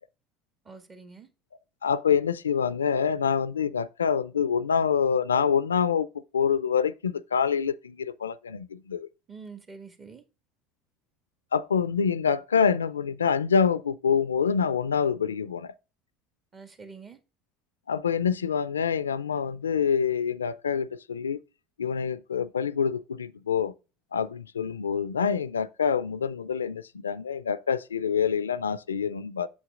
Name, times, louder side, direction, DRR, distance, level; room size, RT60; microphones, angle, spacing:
voice 1, 0.6-1.3 9.3-10.2 16.5-17.2, right 5 dB, 30° right, 1.7 m, -46 dB
voice 2, 1.8-6.1 6.3-9.1 11.5-15.7 17.9-21.4 21.8-23.7 24.1-29.5, left 7 dB, 90° left, 0.4 m, -26 dB
8.3 x 6.6 x 2.4 m
hypercardioid pair, 70°, 0 cm